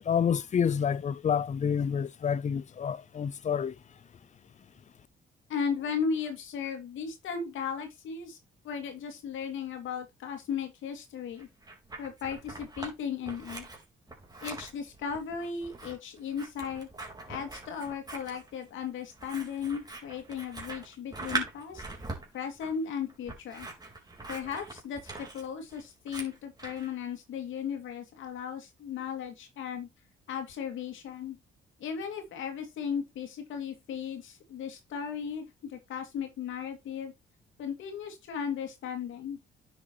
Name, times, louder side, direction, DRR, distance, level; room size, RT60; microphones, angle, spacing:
voice 1, 0.1-3.8, left 7 dB, 35° left, 0.6 m, -28 dB
voice 2, 5.5-8.4 8.6-11.5 12.0-13.7 14.4-16.9 17.3-21.8 22.3-23.7 24.3-29.9 30.3-31.4 31.8-37.1 37.6-39.4, left 7 dB, 80° left, 2.5 m, -36 dB
Scissors, 11.4-12.9 13.2-26.9, right 3 dB, 20° right, 3.9 m, -42 dB
10.0 x 6.9 x 3.0 m
cardioid pair, 90°, 20 cm